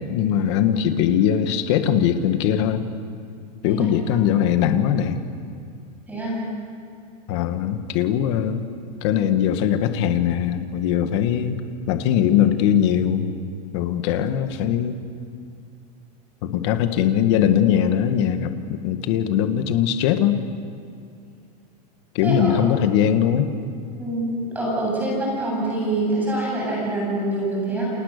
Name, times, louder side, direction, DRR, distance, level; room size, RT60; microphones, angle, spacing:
voice 1, 0.1-2.9 3.6-5.2 7.3-8.6 9.0-11.6 11.9-13.3 13.7-15.0 16.4-20.4 22.2-23.5, left 9 dB, 45° left, 8 dB, 1.7 m, -21 dB
voice 2, 22.2-22.5 24.0-24.3 24.5-27.9, right 2 dB, 10° right, -4 dB, 7.7 m, -25 dB
30.0 x 28.0 x 6.8 m, 2.4 s
supercardioid pair, 170°, 21 cm